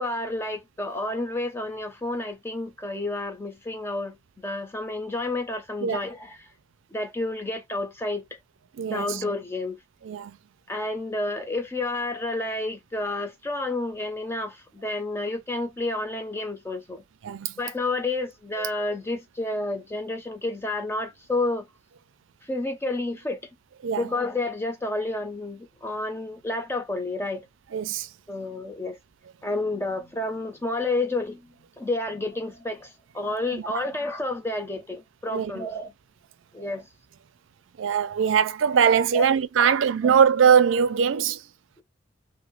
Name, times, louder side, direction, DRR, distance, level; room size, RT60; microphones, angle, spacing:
voice 1, 0.0-6.4 6.9-8.3 8.9-9.8 10.7-17.0 17.6-21.7 22.4-23.5 24.0-27.5 28.3-29.0 29.4-35.9 36.5-36.9 39.1-39.3 40.0-40.2, left 2 dB, 15° left, 0.6 m, -30 dB
voice 2, 8.8-9.2 10.1-10.4 17.2-17.5 18.6-18.7 23.8-24.1 27.7-28.1 33.5-33.8 35.3-35.5 37.8-41.4, right 7 dB, 90° right, 0.4 m, -21 dB
2.7 x 2.5 x 3.0 m
head